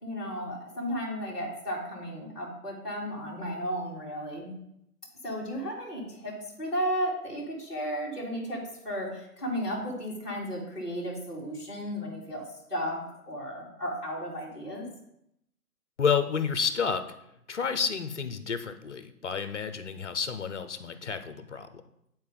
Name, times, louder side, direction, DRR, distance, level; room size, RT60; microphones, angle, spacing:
voice 1, 0.0-4.5 5.2-12.4 12.7-13.0 13.3-14.8, equal, ahead, -12 dB, 1.9 m, -34 dB
voice 2, 16.0-17.1 17.5-21.7, left 6 dB, 50° left, 10 dB, 0.7 m, -30 dB
9.6 x 4.4 x 3.8 m, 0.79 s
figure-of-eight pair, 160°, 46 cm